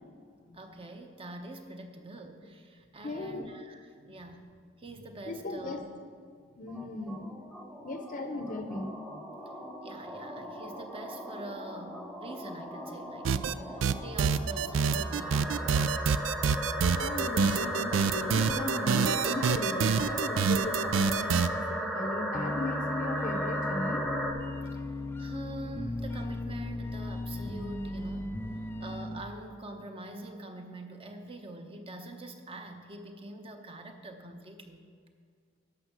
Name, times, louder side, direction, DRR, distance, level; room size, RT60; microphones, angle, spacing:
voice 1, 0.5-4.4 4.8-5.8 9.8-15.9 25.2-28.4 28.8-34.8, right 1 dB, 30° right, 5 dB, 0.9 m, -44 dB
voice 2, 3.0-3.5 5.3-5.8 6.6-7.3 7.8-9.2 16.9-24.0, left 2 dB, 45° left, 6 dB, 0.7 m, -37 dB
sound 1, 6.7-24.3, equal, 5° right, 1.1 m, -36 dB
sound 2, 13.2-13.5 13.8-21.5, right 6 dB, 75° right, 0.4 m, -26 dB
sound 3, 22.3-29.2, left 2 dB, 10° left, 0.3 m, -36 dB
11.5 x 6.5 x 6.1 m, 2.1 s
head